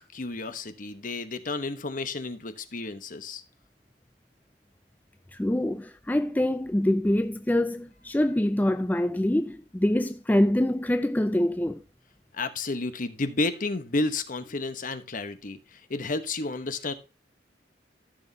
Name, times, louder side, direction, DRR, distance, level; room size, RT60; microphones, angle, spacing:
voice 1, 0.0-3.4 12.3-16.9, left 3 dB, 50° left, 1.1 m, -31 dB
voice 2, 5.3-11.8, left 1 dB, 10° left, 0.4 m, -25 dB
14.0 x 6.4 x 2.8 m
head